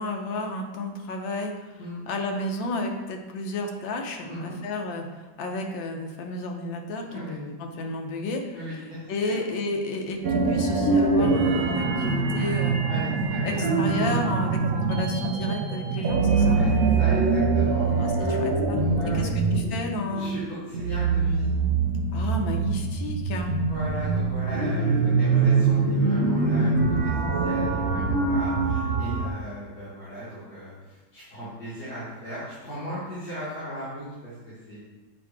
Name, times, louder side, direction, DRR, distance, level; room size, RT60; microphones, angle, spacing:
voice 1, 0.0-1.8 2.1-8.5 9.1-12.8 13.4-16.6 18.0-18.8 19.1-20.3 22.1-23.5, left 2 dB, 80° left, 3 dB, 1.5 m, -32 dB
voice 2, 4.2-4.6 7.0-7.3 8.5-9.3 12.9-13.7 16.3-18.4 18.8-19.3 20.1-21.5 23.4-27.1 27.4-34.8, equal, 55° left, -14 dB, 2.5 m, -37 dB
sound 1, 10.2-29.3, right 4 dB, 65° right, 0.9 m, -24 dB
7.5 x 2.6 x 4.7 m, 1.2 s
omnidirectional pair, 2.1 m